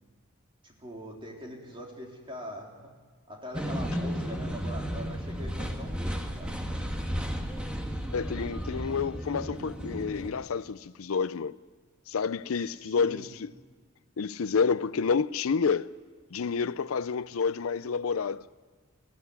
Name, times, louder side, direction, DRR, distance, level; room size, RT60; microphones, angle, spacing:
voice 1, 0.6-2.9 3.3-6.6 12.5-13.3, equal, 25° right, 3.6 m, -43 dB
sound 1, 3.5-10.3, equal, 5° right, 1.6 m, -33 dB
voice 2, 8.1-11.6 12.1-13.5 14.2-15.9 16.3-18.4, left 5 dB, 85° left, 0.5 m, -29 dB
20.0 x 15.0 x 9.6 m
head